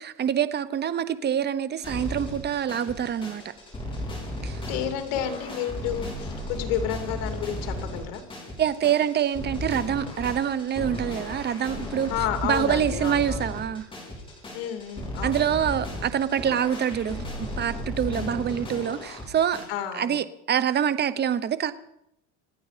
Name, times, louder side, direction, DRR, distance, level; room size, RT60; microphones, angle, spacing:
voice 1, 0.0-3.5 4.4-4.6 8.6-12.1 12.4-13.9 15.2-19.6 19.9-21.7, right 9 dB, 30° right, 1.0 m, -26 dB
sound 1, 1.8-19.6, left 1 dB, 15° left, 5.7 m, -35 dB
voice 2, 4.7-8.2 12.1-13.5 14.5-15.4 18.1-18.4 19.7-20.2, left 9 dB, 70° left, 2.8 m, -31 dB
27.0 x 9.5 x 5.1 m
cardioid pair, 135°, 35 cm